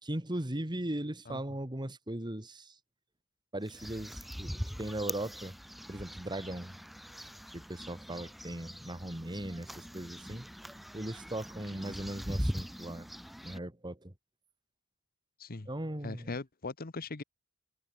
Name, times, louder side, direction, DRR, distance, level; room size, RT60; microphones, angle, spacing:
voice 1, 0.0-2.7 3.5-5.5 5.9-6.8 7.5-10.5 10.9-13.1 13.4-14.1 15.7-16.3, right 1 dB, 20° right, 2.0 m, -38 dB
sound 1, 3.6-13.6, equal, ahead, 0.8 m, -41 dB
voice 2, 16.0-17.2, left 3 dB, 45° left, 1.1 m, -39 dB
head